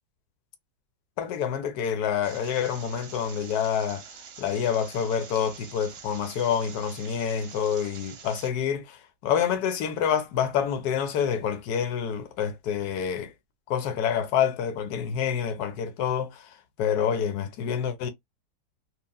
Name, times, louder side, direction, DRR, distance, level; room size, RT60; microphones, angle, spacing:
voice 1, 1.2-4.0 4.4-13.3 13.7-16.5 16.8-18.1, left 8 dB, 75° left, 1.1 m, -27 dB
sound 1, 2.2-8.5, right 7 dB, 60° right, 1.0 m, -46 dB
2.8 x 2.4 x 2.2 m
omnidirectional pair, 1.8 m